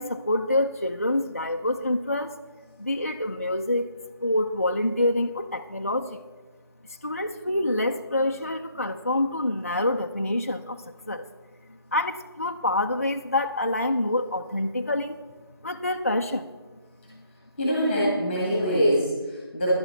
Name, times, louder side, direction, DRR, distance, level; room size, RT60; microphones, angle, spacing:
voice 1, 0.0-2.4 2.8-3.9 4.2-6.2 7.0-11.3 11.9-15.2 15.6-16.5 17.1-17.2, left 1 dB, 35° left, 5 dB, 0.4 m, -26 dB
voice 2, 17.6-19.7, equal, 5° left, -6 dB, 1.5 m, -24 dB
11.0 x 11.0 x 4.4 m, 1.3 s
figure-of-eight pair, 170°, 13 cm